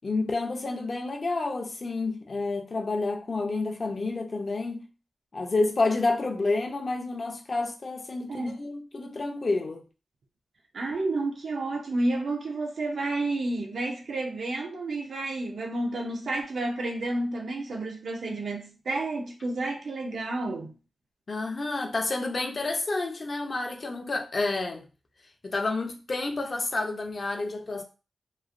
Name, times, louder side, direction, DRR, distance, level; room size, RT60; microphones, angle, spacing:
voice 1, 0.0-4.8 5.3-9.8 21.3-24.8 25.4-27.8, left 3 dB, 45° left, 0.6 m, -29 dB
voice 2, 10.7-20.7, right 2 dB, 75° right, 0.7 m, -30 dB
3.1 x 2.5 x 2.5 m
wide cardioid pair, 115°, 0 cm